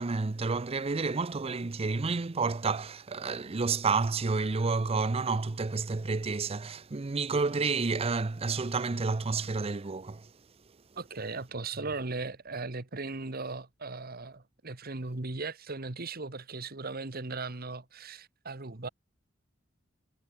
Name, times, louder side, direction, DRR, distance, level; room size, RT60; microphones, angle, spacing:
voice 1, 0.0-10.3, right 4 dB, 30° right, 0.6 m, -30 dB
voice 2, 10.9-18.9, right 3 dB, 50° right, 1.6 m, -38 dB
head